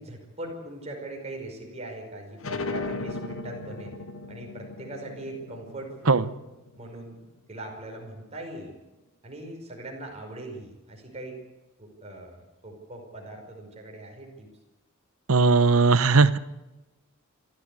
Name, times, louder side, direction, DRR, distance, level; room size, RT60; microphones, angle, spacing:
voice 1, 0.0-4.0 4.3-6.3 6.8-7.2 7.5-8.7 9.2-11.4 11.8-14.5, right 1 dB, 30° right, 1 dB, 5.4 m, -40 dB
sound 1, 2.4-7.7, left 3 dB, 65° left, 1.8 m, -37 dB
voice 2, 15.3-16.4, right 4 dB, 75° right, 15 dB, 0.9 m, -18 dB
27.5 x 12.5 x 8.4 m, 1.1 s
head